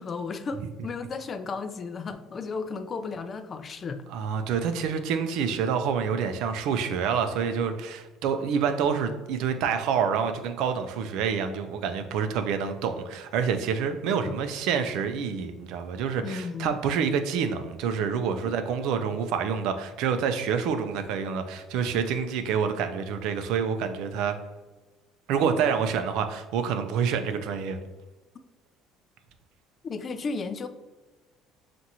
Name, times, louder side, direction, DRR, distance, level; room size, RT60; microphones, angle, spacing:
voice 1, 0.0-4.1 14.1-14.4 16.2-16.8 18.4-18.5 29.8-30.7, left 4 dB, 35° left, 0.3 m, -34 dB
voice 2, 4.1-24.4 25.3-27.8, right 6 dB, 75° right, 0.5 m, -27 dB
5.9 x 2.5 x 2.8 m
cardioid pair, 115°, 0 cm